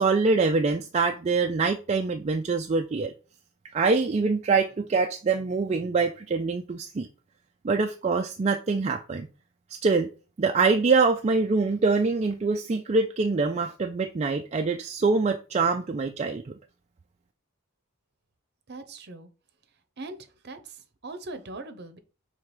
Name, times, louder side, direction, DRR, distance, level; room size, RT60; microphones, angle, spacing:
voice 1, 0.0-3.1 3.7-7.1 7.6-9.3 9.7-10.1 10.4-16.5, right 4 dB, 30° right, 0.3 m, -24 dB
voice 2, 18.7-19.3 20.0-22.0, right 2 dB, 50° right, 0.8 m, -41 dB
5.8 x 3.5 x 4.9 m
head